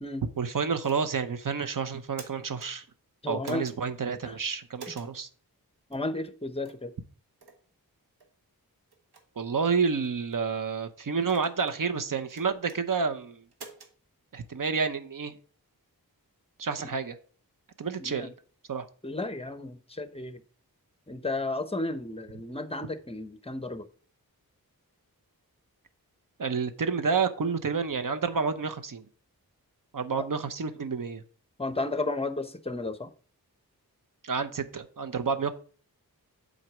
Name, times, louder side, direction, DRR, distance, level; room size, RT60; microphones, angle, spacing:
voice 1, 0.4-2.8 3.3-5.3 9.4-13.4 14.3-15.3 16.6-17.2 17.8-18.3 18.7-18.9 26.4-29.0 29.9-31.2 34.2-35.5, right 5 dB, 60° right, 0.8 m, -29 dB
sound 1, 0.8-1.3 1.9-2.7 3.4-3.8 4.8-5.1 5.9-6.1 6.6-6.9 7.4-7.6 8.2-8.3 8.9-9.2 10.0-10.4 11.2-11.8 12.3-12.8 13.5-13.9, right 4 dB, 85° right, 1.3 m, -47 dB
voice 2, 3.2-3.7 4.2-4.3 5.9-6.9 18.0-18.3 19.0-20.4 21.1-23.9 30.2-30.3 31.6-33.1, left 2 dB, 15° left, 0.8 m, -33 dB
7.7 x 4.0 x 6.1 m
wide cardioid pair, 70°, 37 cm